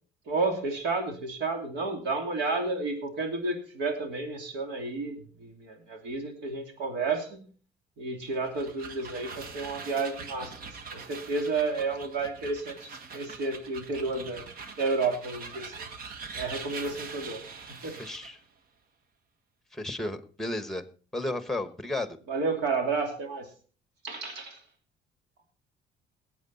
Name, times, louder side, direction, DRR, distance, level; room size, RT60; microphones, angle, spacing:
voice 1, 0.3-7.5 8.0-14.4 14.8-15.9 16.3-17.4 17.7-17.9 22.3-23.4 24.0-24.6, right 3 dB, 85° right, 4 dB, 2.9 m, -31 dB
sound 1, 8.3-18.4, right 5 dB, 60° right, 1.4 m, -43 dB
voice 2, 17.9-18.4 19.7-20.8 21.1-22.2, left 2 dB, ahead, 10 dB, 1.2 m, -33 dB
18.5 x 8.5 x 4.1 m, 0.41 s
cardioid pair, 110°, 17 cm